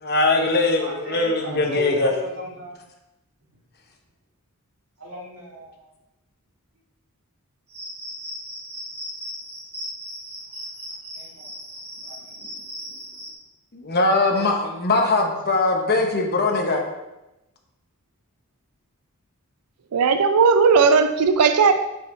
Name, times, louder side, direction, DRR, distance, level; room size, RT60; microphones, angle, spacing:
voice 1, 0.0-2.1 13.7-16.8, left 2 dB, 45° left, 2 dB, 1.0 m, -21 dB
voice 2, 0.5-2.8 5.0-5.9 11.1-11.5 12.0-12.4 14.3-14.6 14.9-15.6 16.1-16.2 21.6-21.7, right 1 dB, 65° right, -3 dB, 1.9 m, -37 dB
Cricket, 7.7-13.3, equal, 30° right, 2.1 m, -37 dB
voice 3, 19.9-21.7, right 5 dB, 90° right, 8 dB, 0.4 m, -16 dB
5.6 x 5.5 x 4.3 m, 0.97 s
head